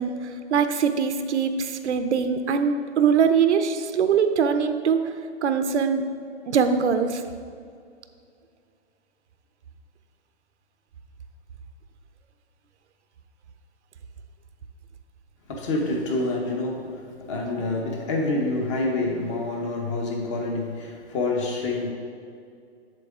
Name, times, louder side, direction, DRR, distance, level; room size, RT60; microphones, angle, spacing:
voice 1, 0.0-5.1 5.4-6.1 6.5-7.2, right 6 dB, 75° right, 8 dB, 0.7 m, -22 dB
voice 2, 15.5-21.9, left 2 dB, 25° left, 1 dB, 1.0 m, -27 dB
7.6 x 7.5 x 3.6 m, 2.3 s
hypercardioid pair, 160°, 34 cm